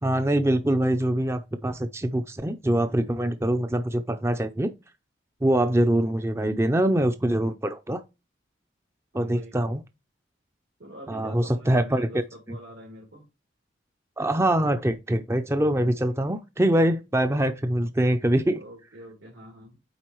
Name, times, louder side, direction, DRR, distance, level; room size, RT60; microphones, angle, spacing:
voice 1, 0.0-4.7 5.4-8.0 9.1-9.8 11.1-12.1 14.2-18.6, right 1 dB, 15° right, 0.4 m, -24 dB
voice 2, 9.1-9.6 10.8-13.2 18.5-19.8, equal, 85° right, 2.9 m, -45 dB
9.0 x 3.8 x 3.1 m
head